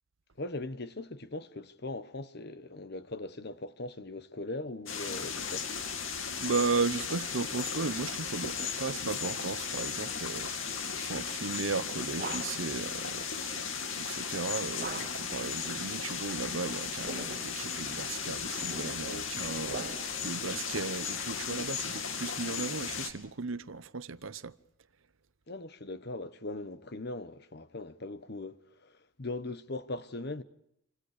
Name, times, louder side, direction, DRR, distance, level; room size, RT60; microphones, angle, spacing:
voice 1, 0.4-5.7 19.0-19.3 25.5-30.4, left 2 dB, 55° left, 1.3 m, -40 dB
sound 1, 4.9-23.1, left 6 dB, 75° left, 2.7 m, -36 dB
voice 2, 6.4-24.6, right 4 dB, 75° right, 0.9 m, -36 dB
sound 2, 12.1-12.8 14.8-15.4 16.8-17.6 18.4-20.3, right 3 dB, 45° right, 1.9 m, -43 dB
28.0 x 25.5 x 5.1 m
head